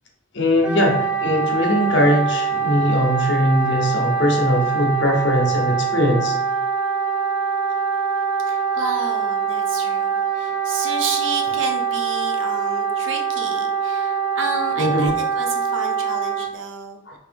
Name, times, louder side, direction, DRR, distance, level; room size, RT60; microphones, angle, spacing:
voice 1, 0.3-6.3 14.8-15.1 17.1-17.2, left 1 dB, 65° left, 1 dB, 0.9 m, -20 dB
Wind instrument woodwind instrument, 0.6-16.5, right 6 dB, 5° right, 0.7 m, -23 dB
voice 2, 8.5-17.0, right 3 dB, 80° right, 4 dB, 0.7 m, -31 dB
4.5 x 2.8 x 3.5 m, 0.75 s
head